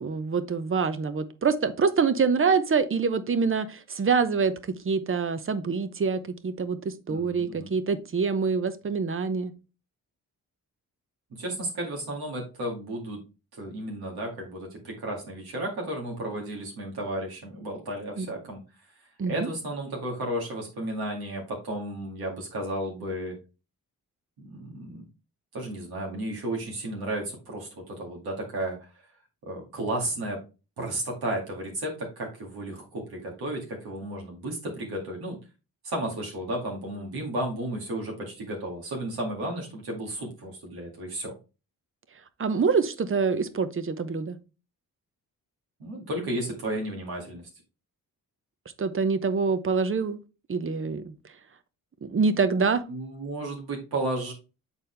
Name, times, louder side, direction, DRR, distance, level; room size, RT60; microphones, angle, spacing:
voice 1, 0.0-9.5 18.2-18.3 19.2-19.5 42.4-44.4 48.8-50.2 50.5-51.1 52.0-52.8, right 5 dB, 35° right, 0.8 m, -25 dB
voice 2, 7.1-7.7 11.4-13.2 13.5-18.6 19.3-23.3 24.4-25.0 25.5-28.8 29.5-30.4 30.8-35.4 35.8-41.3 45.8-47.5 52.9-54.3, right 1 dB, 85° right, 2.1 m, -33 dB
7.0 x 4.1 x 3.3 m
cardioid pair, 75°, 36 cm